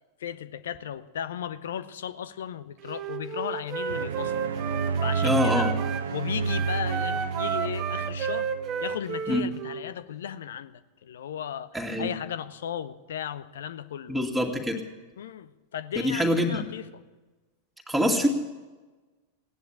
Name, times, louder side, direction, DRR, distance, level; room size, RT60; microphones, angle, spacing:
voice 1, 0.2-4.5 5.0-5.7 6.1-8.5 8.8-14.2 15.2-16.9, left 9 dB, 60° left, 15 dB, 0.7 m, -35 dB
Wind instrument woodwind instrument, 2.8-6.1 6.4-9.8, right 6 dB, 35° right, 1.2 m, -32 dB
sound 1, 3.9-9.0, right 5 dB, 65° right, 0.8 m, -30 dB
voice 2, 5.2-5.7 9.3-9.4 11.7-12.1 14.1-14.8 16.0-16.6 17.9-18.3, left 1 dB, ahead, 0 dB, 2.5 m, -25 dB
16.5 x 10.5 x 8.4 m, 1.2 s
figure-of-eight pair, 90°, 0 cm